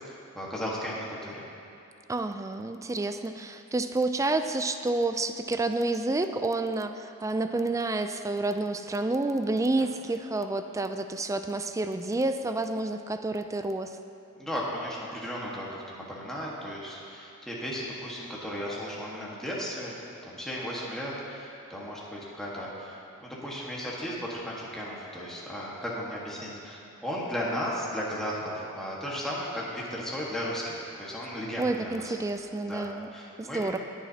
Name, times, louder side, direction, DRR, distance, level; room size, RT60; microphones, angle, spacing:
voice 1, 0.1-1.4 9.8-9.9 14.4-19.9 20.2-32.1 32.6-32.9 33.1-33.8, equal, ahead, -6 dB, 1.5 m, -35 dB
voice 2, 2.1-13.9 31.6-33.1 33.4-33.8, right 2 dB, 15° right, 8 dB, 0.4 m, -29 dB
20.5 x 7.2 x 2.8 m, 2.7 s
head